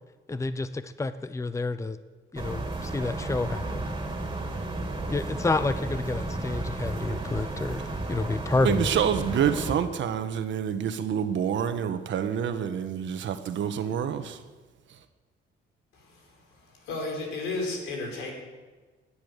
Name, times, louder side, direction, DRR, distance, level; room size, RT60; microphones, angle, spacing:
voice 1, 0.3-2.0 2.3-3.8 5.1-8.9, left 3 dB, 15° left, 12 dB, 0.7 m, -29 dB
sound 1, 2.4-9.7, right 2 dB, 25° right, 3.0 m, -33 dB
voice 2, 8.6-14.4, right 8 dB, 70° right, 9 dB, 1.4 m, -27 dB
voice 3, 16.7-18.3, left 2 dB, 85° left, 1 dB, 5.1 m, -32 dB
18.5 x 10.0 x 6.7 m, 1.3 s
cardioid pair, 90°, 20 cm